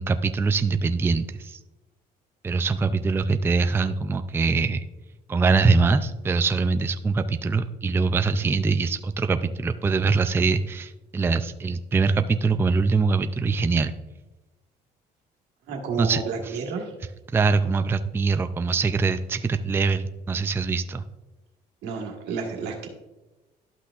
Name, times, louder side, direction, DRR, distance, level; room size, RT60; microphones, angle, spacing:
voice 1, 0.0-1.6 2.4-4.8 5.3-13.9 16.0-16.2 17.3-21.0, right 4 dB, 15° right, 10 dB, 0.3 m, -23 dB
voice 2, 15.7-16.9 21.8-22.9, right 5 dB, 85° right, 2 dB, 1.5 m, -31 dB
12.0 x 5.9 x 2.5 m, 1.1 s
cardioid pair, 110°, 17 cm